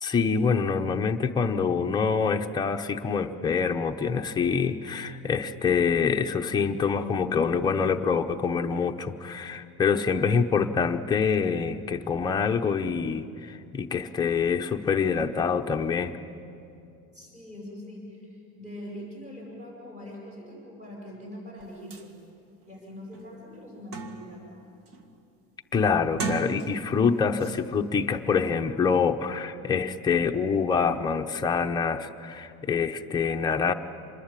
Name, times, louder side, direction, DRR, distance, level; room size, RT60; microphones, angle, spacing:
voice 1, 0.0-16.2 25.7-33.7, left 5 dB, 15° left, 3 dB, 0.8 m, -26 dB
voice 2, 17.1-22.1 22.6-24.6, equal, 25° right, -3 dB, 7.7 m, -42 dB
sound 1, 21.6-21.7 21.9-22.1 22.6-22.7 23.1-24.5 24.9-25.2 26.0-27.0 27.4-27.6, right 4 dB, 50° right, 1.8 m, -36 dB
26.0 x 21.5 x 9.0 m, 2.6 s
cardioid pair, 170°, 29 cm